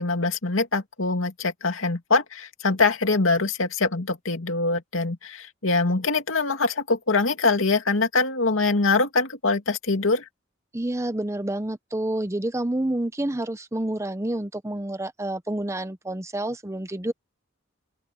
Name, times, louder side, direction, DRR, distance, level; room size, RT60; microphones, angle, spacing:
voice 1, 0.0-10.2, left 3 dB, 90° left, 2.4 m, -23 dB
voice 2, 10.7-17.1, right 1 dB, 15° right, 0.8 m, -28 dB
open air
head